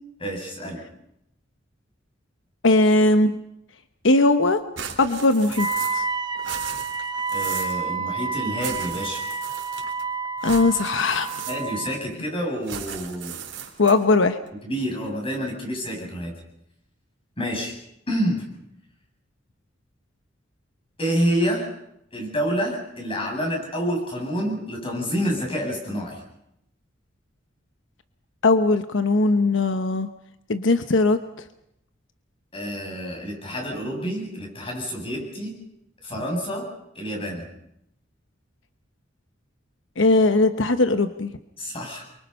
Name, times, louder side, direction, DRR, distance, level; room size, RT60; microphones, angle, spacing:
voice 1, 0.2-0.8 7.3-9.2 11.5-13.4 14.6-16.3 17.4-17.7 18.1-18.4 21.0-21.7 22.1-26.2 32.5-35.5 36.0-36.7 36.9-37.4 41.6-42.0, equal, 30° left, 0 dB, 7.9 m, -28 dB
voice 2, 2.6-3.3 4.0-4.6 5.0-5.7 5.9-6.1 10.4-11.3 13.8-14.4 28.4-30.1 30.5-31.2 40.0-41.3, left 2 dB, 85° left, 9 dB, 1.0 m, -19 dB
sound 1, 4.8-6.1 6.4-7.8 8.6-10.0 10.4-11.9 12.6-14.1, right 8 dB, 75° right, 4.2 m, -37 dB
Wind instrument woodwind instrument, 5.6-12.0, right 4 dB, 25° right, 0.8 m, -29 dB
28.5 x 24.0 x 5.6 m, 0.79 s
head